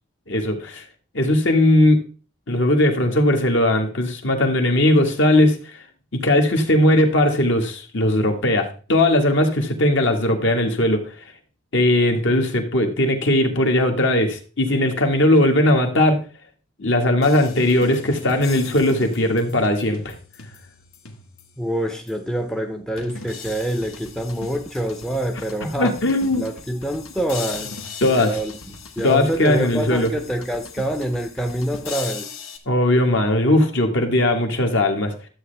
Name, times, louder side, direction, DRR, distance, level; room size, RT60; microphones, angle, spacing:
voice 1, 0.3-0.8 1.1-2.0 2.5-5.6 6.1-11.1 11.7-16.2 16.8-20.2 25.8-26.5 28.0-28.4 29.0-30.1 32.7-35.1, left 1 dB, 60° left, 3 dB, 1.7 m, -18 dB
sound 1, 17.2-21.6 22.1-22.2 23.0-32.6, left 4 dB, 85° left, 1.6 m, -39 dB
voice 2, 21.6-25.9 26.3-27.7 28.1-32.3, right 1 dB, 5° left, 6 dB, 0.6 m, -26 dB
12.5 x 7.9 x 3.4 m, 0.36 s
head